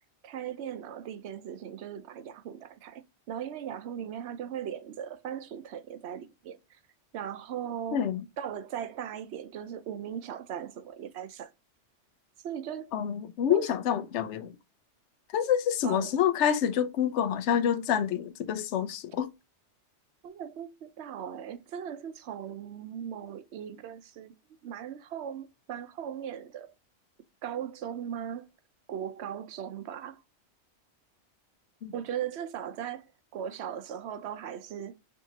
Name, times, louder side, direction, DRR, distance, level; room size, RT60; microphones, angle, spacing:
voice 1, 0.2-6.8 7.1-8.0 8.4-11.5 12.4-12.9 13.5-13.7 15.8-16.1 20.2-24.3 24.6-26.7 27.4-28.5 28.9-30.2 31.9-34.9, right 9 dB, 70° right, 0.8 m, -38 dB
voice 2, 7.9-8.2 12.9-14.5 15.3-19.3 31.8-31.9, left 9 dB, 75° left, 0.9 m, -27 dB
6.4 x 2.7 x 2.7 m
omnidirectional pair, 1.2 m